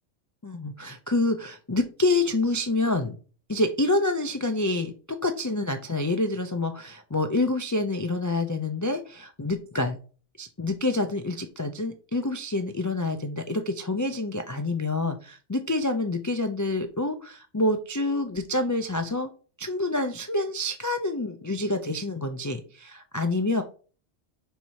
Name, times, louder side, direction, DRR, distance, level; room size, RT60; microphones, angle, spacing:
voice 1, 0.4-3.2 3.5-10.0 10.4-19.3 19.6-23.6, left 2 dB, 25° left, 6 dB, 0.4 m, -27 dB
5.5 x 4.5 x 4.6 m, 0.38 s
omnidirectional pair, 1.2 m